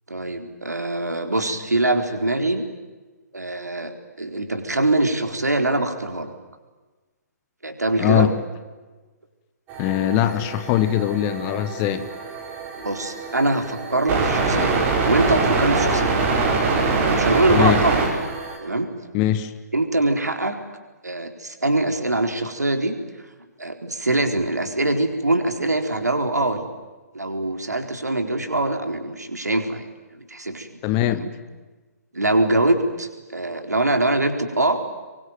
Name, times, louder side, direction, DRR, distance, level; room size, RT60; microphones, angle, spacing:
voice 1, 0.1-2.6 3.3-6.3 7.6-8.3 12.8-14.8 15.0-16.2 16.8-18.0 18.6-18.9 19.7-20.6 21.0-23.0 23.6-26.7 27.1-30.7 31.2-31.3 32.1-34.8, right 2 dB, 75° right, 6 dB, 4.1 m, -23 dB
voice 2, 8.0-8.3 9.8-12.1 17.5-17.8 19.1-19.5 30.8-31.2, left 12 dB, 20° left, 12 dB, 1.3 m, -21 dB
sound 1, 9.7-18.6, right 4 dB, 20° right, 6.0 m, -24 dB
26.5 x 23.5 x 9.4 m, 1.3 s
figure-of-eight pair, 135°, 9 cm